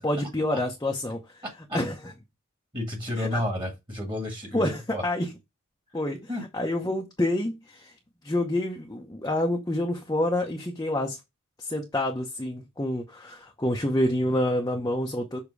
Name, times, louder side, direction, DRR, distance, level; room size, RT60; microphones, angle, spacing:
voice 1, 0.0-1.4 1.7-2.1 3.2-3.4 4.5-5.3 5.9-7.9 8.2-11.2 11.6-15.4, left 1 dB, 15° left, 0.7 m, -28 dB
voice 2, 1.4-1.8 2.7-5.0 6.3-6.5, left 1 dB, 20° right, 1.6 m, -31 dB
6.9 x 2.9 x 4.7 m
head